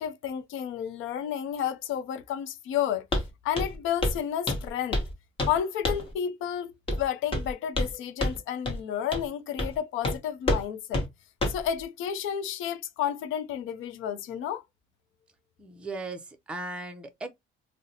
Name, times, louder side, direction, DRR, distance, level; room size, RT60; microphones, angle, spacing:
voice 1, 0.0-3.1 3.4-5.1 5.5-6.7 7.0-11.0 11.5-14.6, left 9 dB, 75° left, 0.5 m, -31 dB
Walk footsteps, 3.1-3.3 3.6-4.2 4.5-5.1 5.4-5.6 5.9-6.1 6.9-7.0 7.3-7.9 8.2-8.4 8.7-8.8 9.1-9.3 9.6-9.8 10.0-10.2 10.5-10.7 10.9-11.1 11.4-11.7, left 1 dB, 25° left, 0.9 m, -28 dB
voice 2, 15.6-17.3, right 2 dB, 5° right, 0.5 m, -37 dB
3.9 x 2.0 x 2.6 m
cardioid pair, 135°, 21 cm